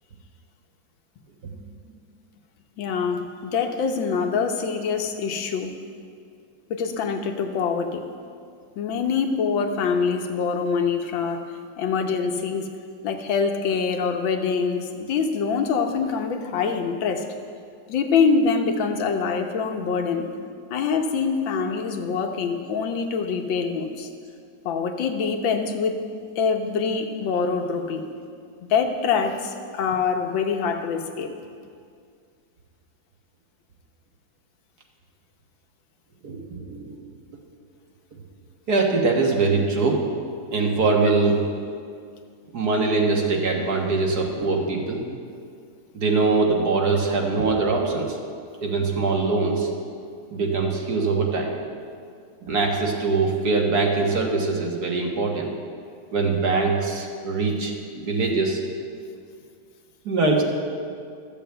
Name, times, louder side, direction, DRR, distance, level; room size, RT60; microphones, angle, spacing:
voice 1, 2.8-5.7 6.7-8.0 8.8-11.5 11.8-12.7 13.0-17.3 17.9-20.3 20.7-24.1 24.6-26.0 26.4-28.1 28.6-31.3, left 5 dB, 90° left, 5 dB, 1.7 m, -24 dB
voice 2, 36.2-37.0 38.7-40.1 40.5-41.4 42.5-45.0 45.9-48.2 48.6-49.7 50.3-51.5 52.4-55.5 56.1-58.6 60.1-60.4, right 3 dB, 55° right, 1 dB, 1.8 m, -22 dB
13.5 x 7.0 x 7.8 m, 2.2 s
omnidirectional pair, 2.0 m